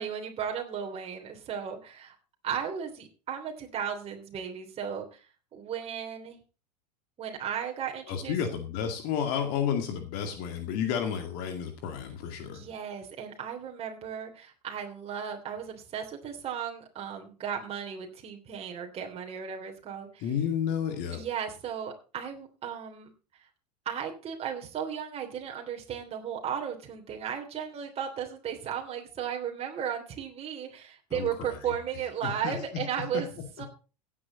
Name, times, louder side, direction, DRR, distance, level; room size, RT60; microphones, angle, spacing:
voice 1, 0.0-2.1 2.4-5.2 5.5-6.4 7.2-8.4 12.5-20.3 21.1-23.1 23.8-33.7, right 8 dB, 30° right, 2 dB, 3.2 m, -35 dB
voice 2, 8.1-12.6 20.2-21.2 31.1-31.5 32.2-32.6 33.1-33.2, left 8 dB, 45° left, 6 dB, 2.2 m, -31 dB
16.5 x 8.7 x 4.1 m, 0.35 s
figure-of-eight pair, 85°, 21 cm